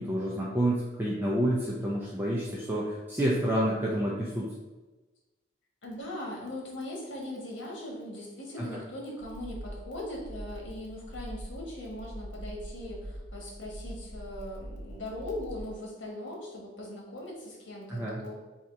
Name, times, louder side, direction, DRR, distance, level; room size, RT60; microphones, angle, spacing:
voice 1, 0.0-4.5 8.6-8.8 17.9-18.2, right 1 dB, 10° right, -5 dB, 0.5 m, -29 dB
voice 2, 5.8-18.4, left 1 dB, 85° left, -2 dB, 1.3 m, -40 dB
sound 1, 9.2-15.6, equal, 50° right, 1.2 m, -43 dB
3.8 x 2.9 x 4.5 m, 1.2 s
head